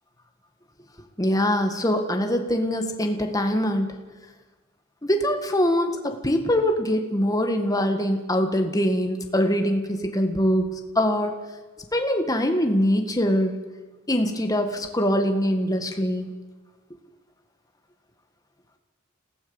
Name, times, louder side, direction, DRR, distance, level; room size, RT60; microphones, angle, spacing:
voice 1, 1.2-3.9 5.0-10.7 11.0-11.4 11.9-13.5 14.1-16.3, equal, 20° left, 5 dB, 1.8 m, -23 dB
27.0 x 16.5 x 7.2 m, 1.3 s
head